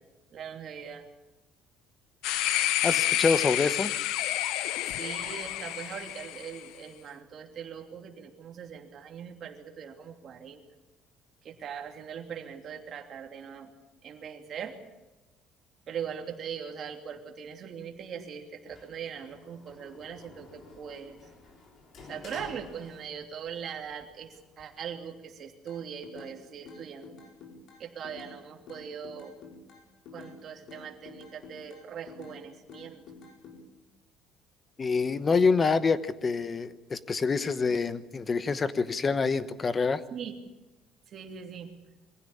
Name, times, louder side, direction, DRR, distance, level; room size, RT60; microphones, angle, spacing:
voice 1, 0.3-1.1 5.0-10.6 11.4-13.7 14.0-14.8 15.9-21.2 22.1-27.2 27.8-29.3 30.1-33.0 40.1-40.3 41.1-41.7, right 7 dB, 40° right, 3 dB, 2.9 m, -41 dB
sound 1, 2.2-6.6, left 14 dB, 85° left, 0.9 m, -29 dB
voice 2, 2.8-3.9 34.8-40.0, left 4 dB, 25° left, 13 dB, 1.0 m, -26 dB
Sliding door, 18.7-23.5 23.8-24.8, left 3 dB, 40° left, 3.5 m, -51 dB
sound 2, 25.7-26.4 26.7-28.4 28.7-30.4 30.7-32.4 32.7-33.6, left 5 dB, 60° left, 4.7 m, -48 dB
23.5 x 16.0 x 8.6 m, 1.1 s
cardioid pair, 155°, 0 cm